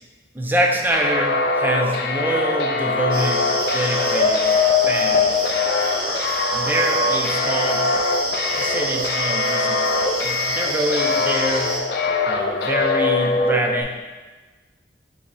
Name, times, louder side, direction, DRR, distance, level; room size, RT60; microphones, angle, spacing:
voice 1, 0.3-3.4 3.7-4.5 4.9-5.5 6.5-7.9 8.5-11.8 12.3-13.9, right 1 dB, 10° right, 2 dB, 0.4 m, -25 dB
sound 1, 0.9-13.8, left 3 dB, 60° left, 0.4 m, -22 dB
sound 2, 3.1-11.8, right 1 dB, 30° right, 0.8 m, -28 dB
5.9 x 2.1 x 3.9 m, 1.3 s
head